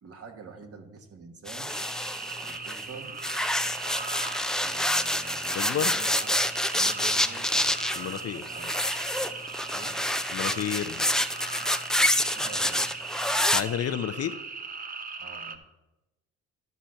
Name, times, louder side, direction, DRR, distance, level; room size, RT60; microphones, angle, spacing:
voice 1, 0.0-1.8 2.4-3.2 4.6-6.4 6.7-7.8 8.2-8.7 9.7-10.0 12.3-12.9 15.2-15.6, right 4 dB, 50° right, 5 dB, 1.4 m, -46 dB
sound 1, 1.5-2.8 3.2-13.6, left 1 dB, ahead, 0.4 m, -27 dB
sound 2, 1.7-15.6, right 4 dB, 30° right, 0.7 m, -38 dB
voice 2, 5.5-5.9 7.9-8.4 10.3-11.1 13.5-14.4, left 10 dB, 55° left, 11 dB, 0.6 m, -30 dB
12.0 x 4.3 x 6.4 m, 1.0 s
cardioid pair, 90°, 30 cm